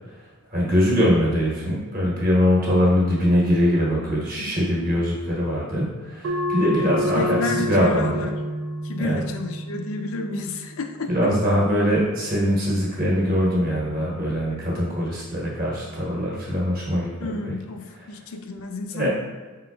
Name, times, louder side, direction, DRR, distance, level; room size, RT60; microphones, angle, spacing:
voice 1, 0.5-8.3 9.0-9.2 11.1-17.5 18.9-19.1, equal, 40° right, -5 dB, 1.2 m, -22 dB
sound 1, 6.2-11.4, equal, 60° right, 0.4 m, -29 dB
voice 2, 7.1-8.4 8.8-11.3 17.2-19.1, left 3 dB, 70° left, 5 dB, 0.4 m, -30 dB
4.9 x 3.7 x 2.3 m, 1.4 s
head